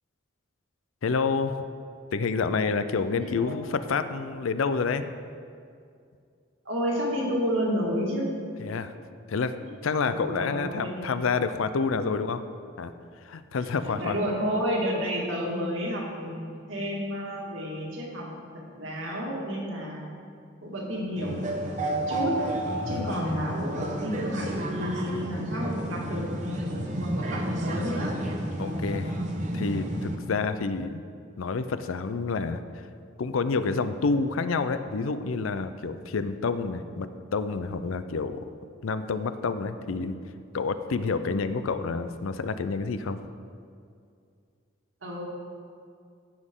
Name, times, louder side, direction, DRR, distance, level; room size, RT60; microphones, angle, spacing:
voice 1, 1.0-1.6 2.1-5.1 8.6-8.9 9.3-9.5 9.8-12.4 12.8-12.9 13.2-14.2 22.8-23.2 28.6-29.2 29.5-31.0 31.4-32.8 33.2-38.5 38.8-40.1 40.5-43.2, left 4 dB, 90° left, 11 dB, 0.5 m, -28 dB
voice 2, 3.2-3.5 6.7-8.3 10.1-11.0 11.3-11.4 11.9-12.1 13.5-13.6 14.0-18.3 18.7-20.1 20.6-22.4 22.9-28.1 41.2-41.4 45.0-45.2, equal, 80° right, -3 dB, 2.1 m, -31 dB
sound 1, 21.2-30.2, right 1 dB, 35° right, 0.9 m, -31 dB
15.0 x 6.3 x 3.7 m, 2.3 s
head